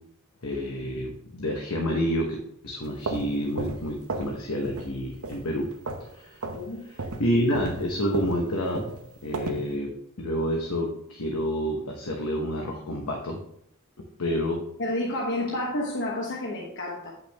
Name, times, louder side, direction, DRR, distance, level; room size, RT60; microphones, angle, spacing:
voice 1, 0.4-2.4 2.6-5.7 6.0-6.4 6.9-8.9 9.2-9.9 10.2-13.4 14.2-14.6, equal, 85° left, 1 dB, 1.0 m, -28 dB
sound 1, 2.8-4.4 4.6-5.0 5.2-6.1 6.4-6.6 7.0-9.7, right 3 dB, 85° right, 0.9 m, -34 dB
voice 2, 14.8-17.1, left 1 dB, 60° left, -1 dB, 1.1 m, -30 dB
8.4 x 5.7 x 3.4 m, 0.74 s
head